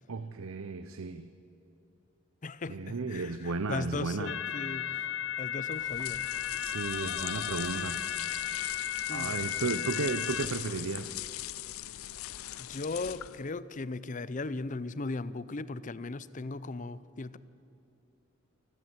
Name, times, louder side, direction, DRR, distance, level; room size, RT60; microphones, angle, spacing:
voice 1, 0.1-1.3 2.7-4.3 6.6-8.0 9.1-11.2, right 4 dB, 80° right, 11 dB, 0.7 m, -34 dB
voice 2, 2.4-5.1 5.4-6.2 9.1-9.3 12.6-17.4, left 3 dB, 35° left, 17 dB, 0.6 m, -37 dB
sound 1, 4.2-10.5, left 9 dB, 60° left, 0.9 m, -35 dB
sound 2, 5.7-13.5, left 14 dB, 80° left, 0.5 m, -40 dB
28.5 x 12.5 x 8.0 m, 2.9 s
head